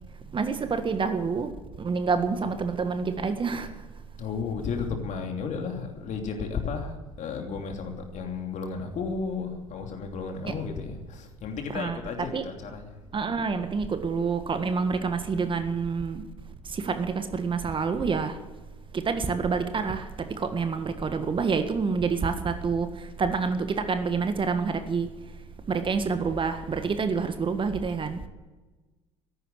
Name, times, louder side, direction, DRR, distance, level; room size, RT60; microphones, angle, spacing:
voice 1, 0.3-1.5 1.8-3.7 10.4-10.5 11.7-12.0 12.3-12.4 13.1-16.2 16.6-18.4 18.9-25.1 25.7-28.2, right 5 dB, 30° right, 8 dB, 1.6 m, -27 dB
voice 2, 4.2-13.0, left 5 dB, 45° left, 3 dB, 2.9 m, -33 dB
14.5 x 11.0 x 8.1 m, 1.2 s
hypercardioid pair, 60°, 16 cm